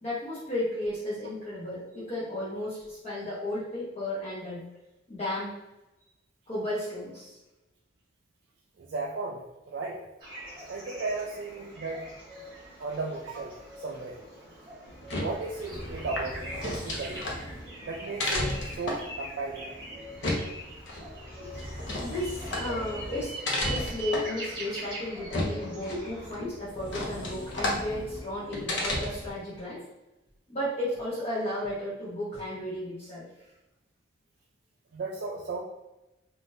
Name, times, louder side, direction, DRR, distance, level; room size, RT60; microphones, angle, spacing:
voice 1, 0.0-4.6 5.1-5.5 6.5-7.4 21.4-21.5 22.0-23.3 23.6-29.8 30.5-33.2, left 1 dB, 30° left, -10 dB, 0.9 m, -34 dB
voice 2, 8.8-9.4 9.7-10.0 10.7-12.0 12.8-14.2 15.2-17.2 17.9-18.4 18.8-19.7 34.9-35.6, right 3 dB, 65° right, -2 dB, 0.4 m, -35 dB
sound 1, 10.2-26.3, right 1 dB, 25° right, 1.2 m, -43 dB
sound 2, 14.9-29.4, left 1 dB, 70° left, 0.7 m, -34 dB
3.5 x 2.5 x 2.6 m, 0.97 s
head